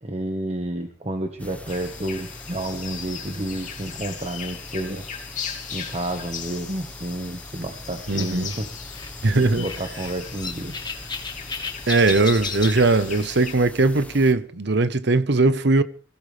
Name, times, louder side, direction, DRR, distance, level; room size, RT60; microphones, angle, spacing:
voice 1, 0.0-5.1 5.7-9.0 9.5-10.7, right 1 dB, 35° right, 1.4 m, -30 dB
sound 1, 1.4-14.3, left 1 dB, 10° left, 1.2 m, -42 dB
sound 2, 1.7-13.5, left 7 dB, 40° left, 2.9 m, -38 dB
sound 3, 7.6-12.9, left 4 dB, 25° left, 1.5 m, -35 dB
voice 2, 8.1-8.5 9.2-9.7 11.9-15.8, right 3 dB, 65° right, 1.0 m, -19 dB
24.5 x 16.5 x 3.4 m
head